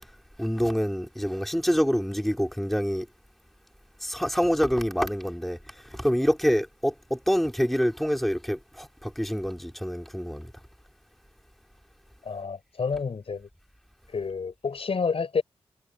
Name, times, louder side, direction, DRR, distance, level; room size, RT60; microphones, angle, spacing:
voice 1, 0.4-3.1 4.0-10.5, equal, ahead, 3.2 m, -26 dB
voice 2, 12.2-13.5 14.1-15.4, left 5 dB, 70° left, 6.5 m, -29 dB
cardioid pair, 45°, 10 cm